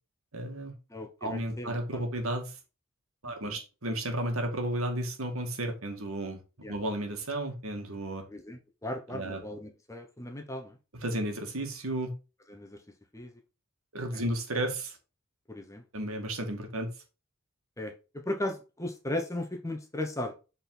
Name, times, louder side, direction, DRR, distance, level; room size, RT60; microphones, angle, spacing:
voice 1, 0.3-0.7 1.2-2.6 3.2-6.4 6.7-8.3 9.1-9.4 11.0-12.1 13.9-15.0 15.9-16.9, right 1 dB, 80° right, 4 dB, 2.1 m, -33 dB
voice 2, 0.9-2.0 3.2-3.6 6.6-6.7 8.3-10.8 12.5-12.8 13.1-13.3 14.1-14.2 15.5-15.8 17.8-20.4, left 1 dB, 15° left, 4 dB, 1.1 m, -37 dB
7.7 x 4.4 x 3.9 m, 0.30 s
head